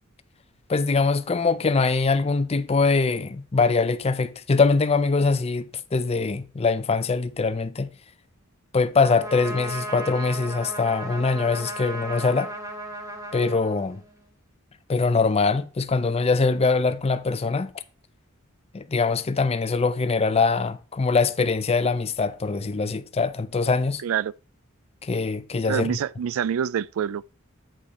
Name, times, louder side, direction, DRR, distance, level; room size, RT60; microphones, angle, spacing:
voice 1, 0.7-7.9 8.7-12.5 13.3-14.0 14.9-17.7 18.7-24.0 25.0-25.9, left 4 dB, 30° left, 0.5 m, -23 dB
Trumpet, 9.0-14.3, right 1 dB, 15° right, 1.6 m, -36 dB
voice 2, 24.0-24.3 25.7-27.3, right 8 dB, 70° right, 0.3 m, -26 dB
8.6 x 5.2 x 4.0 m
head